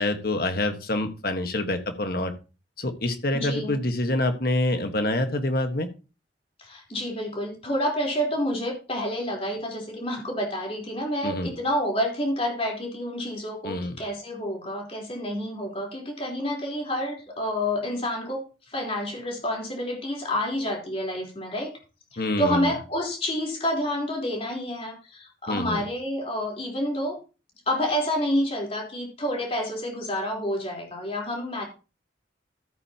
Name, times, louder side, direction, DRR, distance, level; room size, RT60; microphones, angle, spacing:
voice 1, 0.0-2.3 2.8-5.9 11.2-11.5 13.6-13.9 22.2-22.7 25.5-25.8, left 1 dB, 55° left, 7 dB, 1.5 m, -26 dB
voice 2, 3.3-3.8 6.6-21.7 22.1-27.2 27.7-31.6, equal, 30° left, 0 dB, 3.8 m, -29 dB
13.5 x 9.2 x 2.9 m, 0.32 s
head